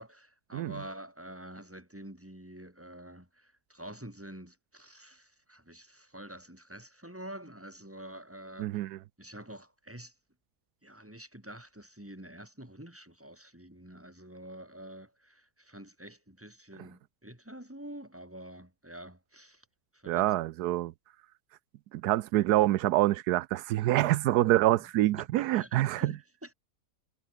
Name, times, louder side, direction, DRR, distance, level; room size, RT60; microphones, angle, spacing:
voice 1, 0.0-10.1 10.8-19.7 19.9-20.3 24.4-24.5 25.2-26.5, right 1 dB, 10° right, 3.8 m, -47 dB
voice 2, 8.6-9.0 20.1-20.9 21.9-26.1, right 15 dB, 85° right, 1.2 m, -26 dB
omnidirectional pair, 1.6 m